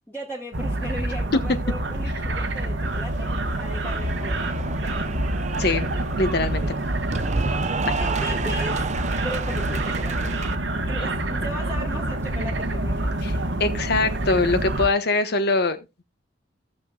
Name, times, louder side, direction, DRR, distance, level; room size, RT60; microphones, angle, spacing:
voice 1, 0.1-5.2 6.6-6.8 7.9-8.9 9.1-10.3 10.7-13.3, equal, 10° left, 1.5 m, -37 dB
sound 1, 0.5-14.9, right 1 dB, 80° right, 1.2 m, -27 dB
Cheering / Applause, 2.8-10.5, right 4 dB, 40° right, 0.7 m, -32 dB
voice 2, 6.2-6.6 13.2-13.3 13.6-16.0, left 3 dB, 60° left, 1.2 m, -22 dB
16.5 x 6.9 x 2.3 m
head